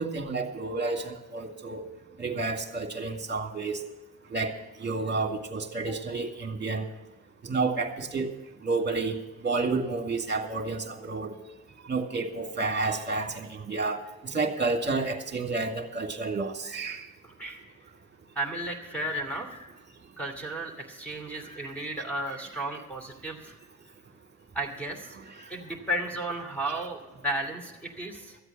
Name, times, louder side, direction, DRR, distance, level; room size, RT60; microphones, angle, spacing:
voice 1, 0.0-1.8 2.2-3.8 4.3-4.5 4.8-6.8 7.4-8.3 8.6-9.2 9.4-11.3 11.9-14.0 14.2-17.0 21.5-21.6, right 3 dB, 30° right, 5 dB, 2.0 m, -30 dB
voice 2, 17.2-17.6 18.4-19.5 20.2-23.5 24.5-25.2 25.5-28.4, right 1 dB, 5° left, 1 dB, 2.6 m, -34 dB
14.0 x 8.1 x 7.2 m, 1.1 s
cardioid pair, 90°, 34 cm